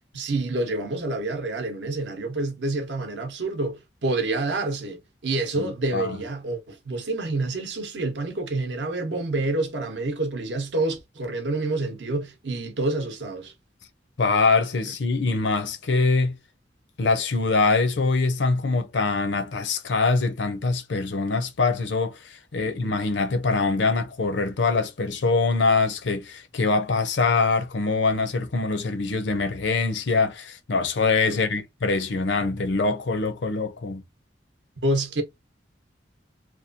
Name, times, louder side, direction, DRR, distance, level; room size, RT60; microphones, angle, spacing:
voice 1, 0.1-13.5 22.6-23.0 31.3-31.4 34.8-35.2, right 2 dB, 70° right, 0.8 m, -28 dB
voice 2, 5.6-6.2 14.2-16.4 17.0-34.0, left 3 dB, 70° left, 0.5 m, -24 dB
2.9 x 2.2 x 2.5 m
head